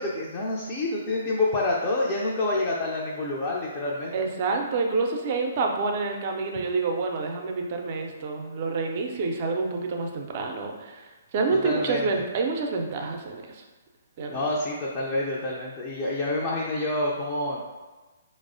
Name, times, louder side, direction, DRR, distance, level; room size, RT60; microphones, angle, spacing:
voice 1, 0.0-4.1 11.6-12.1 14.3-17.6, left 2 dB, 25° left, -5 dB, 0.5 m, -27 dB
voice 2, 4.1-11.1 11.3-13.6 14.2-14.5, right 3 dB, 40° right, 2 dB, 0.5 m, -28 dB
4.6 x 2.0 x 2.6 m, 1.2 s
figure-of-eight pair, 125°, 0 cm